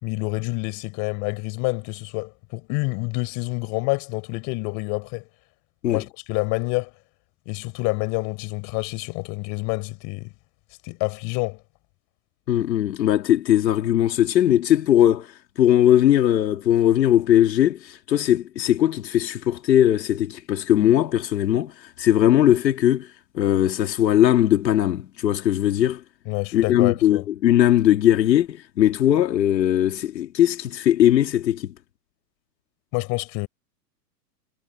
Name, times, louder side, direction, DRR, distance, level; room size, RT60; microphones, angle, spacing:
voice 1, 0.0-5.2 5.9-6.9 7.5-10.3 10.8-11.6 26.3-27.2 32.9-33.5, left 29 dB, 35° left, 4.8 m, -27 dB
voice 2, 12.5-26.0 26.5-31.7, left 11 dB, 80° left, 2.4 m, -19 dB
hypercardioid pair, 145°, 50 cm